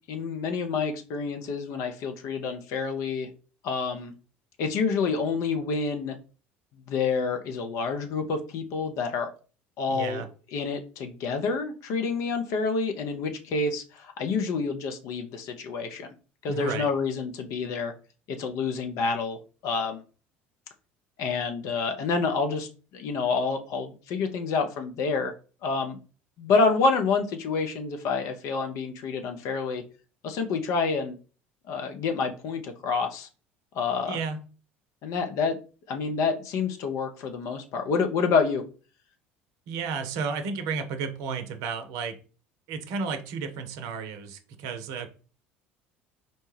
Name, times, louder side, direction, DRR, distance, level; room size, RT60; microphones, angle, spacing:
voice 1, 0.1-3.3 3.6-4.1 4.6-6.2 6.9-9.3 9.8-10.2 10.5-16.1 16.4-17.9 18.3-19.4 19.6-20.0 21.2-25.3 25.6-26.0 26.4-29.8 30.2-31.2 31.7-33.3 33.7-34.2 35.0-35.6 35.9-38.6, left 4 dB, 55° left, 6 dB, 0.6 m, -28 dB
voice 2, 9.9-10.3 16.5-16.9 34.1-34.4 39.7-42.2 42.7-45.1, right 5 dB, 65° right, 8 dB, 0.6 m, -32 dB
4.2 x 2.2 x 3.1 m, 0.36 s
hypercardioid pair, 65°, 6 cm